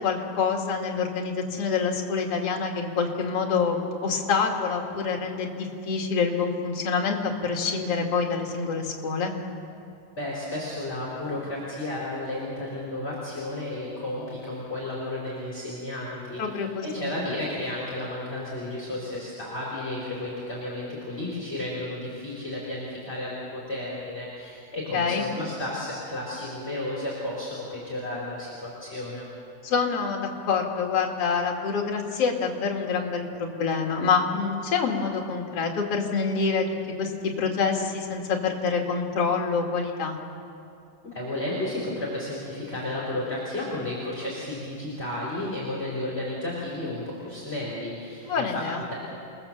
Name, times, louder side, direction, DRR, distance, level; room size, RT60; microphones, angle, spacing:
voice 1, 0.0-9.3 16.4-17.1 24.9-25.3 29.6-36.7 37.0-37.1 37.4-40.2 48.2-48.8, left 5 dB, 45° left, 1 dB, 2.9 m, -26 dB
voice 2, 10.2-29.3 41.0-48.6 48.9-49.0, left 1 dB, 15° left, -5 dB, 4.2 m, -33 dB
29.0 x 19.5 x 7.5 m, 2.5 s
omnidirectional pair, 4.3 m